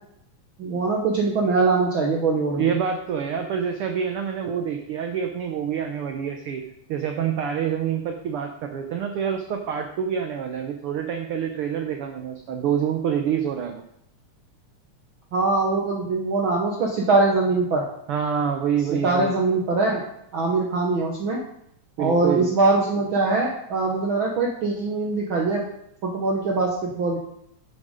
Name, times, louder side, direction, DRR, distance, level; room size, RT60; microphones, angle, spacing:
voice 1, 0.6-2.7 15.3-17.8 19.0-20.0 20.3-21.4 22.0-25.7 26.0-27.2, right 3 dB, 60° right, 0 dB, 1.3 m, -22 dB
voice 2, 2.6-6.6 6.9-13.8 18.1-19.3 22.0-22.5, right 8 dB, 85° right, 4 dB, 1.2 m, -27 dB
7.6 x 7.2 x 5.1 m, 0.74 s
omnidirectional pair, 3.5 m